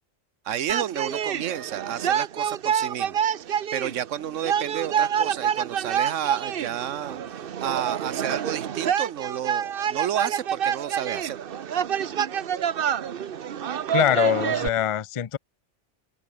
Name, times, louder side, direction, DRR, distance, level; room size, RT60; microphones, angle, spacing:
voice 1, 0.4-3.2 3.4-11.4, right 10 dB, 90° right, 1.2 m, -31 dB
sound 1, 0.7-14.7, right 9 dB, 55° right, 0.9 m, -27 dB
voice 2, 13.9-15.4, left 10 dB, 45° left, 0.4 m, -23 dB
omnidirectional pair, 1.2 m